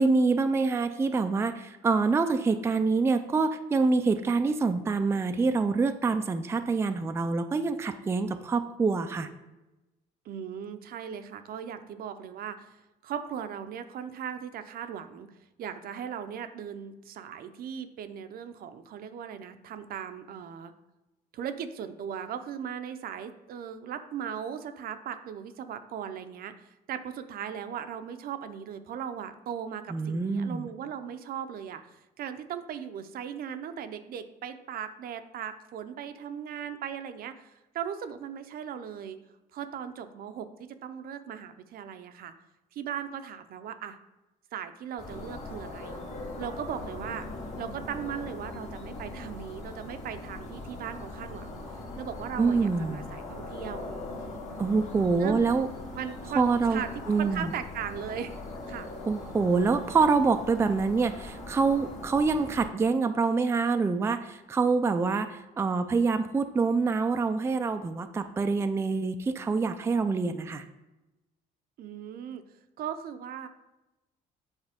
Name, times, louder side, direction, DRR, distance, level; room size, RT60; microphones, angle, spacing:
voice 1, 0.0-9.3 29.9-30.7 52.4-53.0 54.6-55.7 56.4-56.8 57.1-57.5 59.1-70.6, right 4 dB, 15° right, 8 dB, 0.4 m, -26 dB
voice 2, 10.2-20.7 21.3-39.2 39.5-42.3 42.7-44.0 44.5-46.0 46.4-47.3 47.6-53.9 55.2-55.5 55.9-56.4 56.7-56.9 57.2-58.4 58.7-58.9 71.8-72.4 72.8-73.5, right 8 dB, 60° right, 9 dB, 0.6 m, -38 dB
sound 1, 45.0-62.7, left 2 dB, 45° left, 1.6 m, -40 dB
8.1 x 4.3 x 3.5 m, 1.0 s
cardioid pair, 110°, 17 cm